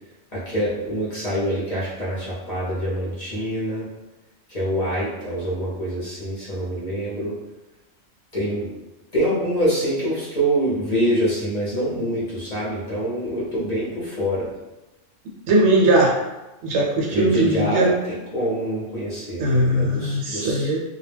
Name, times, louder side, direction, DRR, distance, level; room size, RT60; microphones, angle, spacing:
voice 1, 0.3-3.8 4.5-7.3 8.3-8.7 9.1-14.5 17.1-20.7, equal, 40° left, -8 dB, 0.7 m, -25 dB
voice 2, 15.5-16.2 16.6-17.9 19.4-20.8, right 1 dB, 70° right, -2 dB, 0.9 m, -19 dB
2.2 x 2.1 x 3.2 m, 1.0 s
omnidirectional pair, 1.3 m